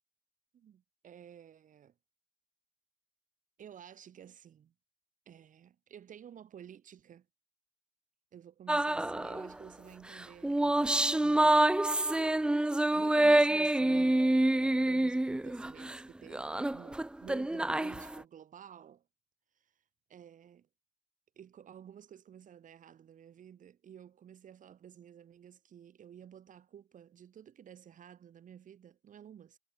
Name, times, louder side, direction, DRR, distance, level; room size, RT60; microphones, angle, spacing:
voice 1, 0.5-1.9 3.6-4.7 5.3-7.3 8.3-11.7 12.9-14.3 14.6-19.1 19.5-19.8 20.1-20.7 21.4-29.6, right 9 dB, 55° right, 2.0 m, -53 dB
sound 1, 8.7-9.5 10.2-16.0 16.3-18.2, right 1 dB, 5° right, 0.4 m, -27 dB
cardioid pair, 85°, 15 cm